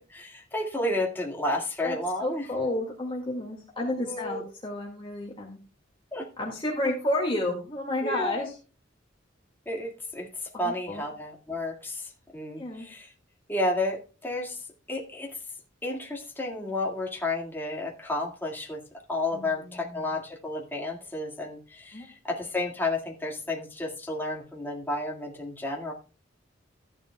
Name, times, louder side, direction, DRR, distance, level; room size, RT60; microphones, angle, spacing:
voice 1, 0.1-2.5 4.0-4.5 6.1-6.3 8.0-8.5 9.7-13.1 13.5-15.4 15.8-18.8 19.1-25.9, left 2 dB, 10° left, -1 dB, 1.9 m, -32 dB
voice 2, 1.8-5.6 6.4-8.5 10.5-11.0 12.6-12.9 19.3-20.0 21.9-22.1, left 1 dB, 25° left, -2 dB, 2.0 m, -31 dB
14.5 x 10.5 x 2.3 m, 0.35 s
head